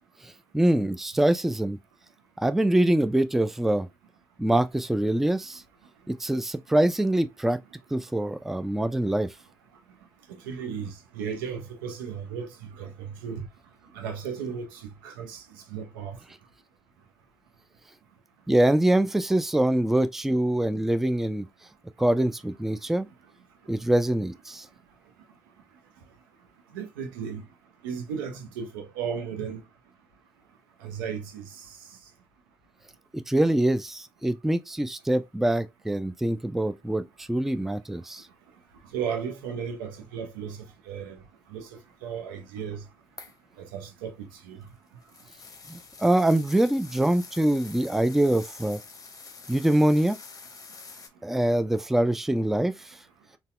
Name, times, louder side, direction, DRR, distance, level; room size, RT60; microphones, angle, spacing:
voice 1, 0.2-1.8 2.4-3.9 4.4-5.6 6.1-7.6 7.9-9.3 18.5-21.5 22.0-23.1 23.7-24.7 33.1-38.3 45.7-48.8 49.5-50.2 51.2-53.0, right 1 dB, 5° right, 0.3 m, -24 dB
voice 2, 10.4-12.5 12.8-13.5 13.9-15.4 15.7-16.2 26.7-27.4 27.8-29.6 30.8-31.4 38.9-40.6 40.9-41.2 41.5-41.7 42.0-42.8 43.6-44.6, right 7 dB, 80° right, 0.6 m, -35 dB
sound 1, 43.2-43.5 44.4-51.1, left 4 dB, 30° left, 0.7 m, -46 dB
4.0 x 2.2 x 2.4 m
hypercardioid pair, 45°, 11 cm